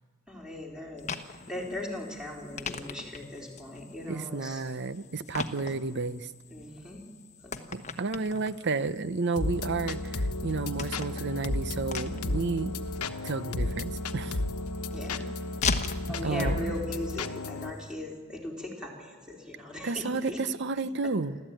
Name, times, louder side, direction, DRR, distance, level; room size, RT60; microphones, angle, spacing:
voice 1, 0.3-4.6 5.6-5.7 6.5-7.1 7.4-7.6 14.9-15.3 16.1-20.4 21.0-21.1, left 1 dB, 5° right, -1 dB, 4.0 m, -39 dB
sound 1, 1.0-17.9, left 5 dB, 30° left, 1.1 m, -41 dB
voice 2, 4.1-6.3 7.7-12.8 13.2-14.4 16.2-16.7 19.8-21.4, right 3 dB, 50° right, 14 dB, 0.7 m, -31 dB
sound 2, 9.4-17.7, left 2 dB, 85° left, 1.2 m, -33 dB
28.5 x 13.0 x 9.1 m, 1.5 s
head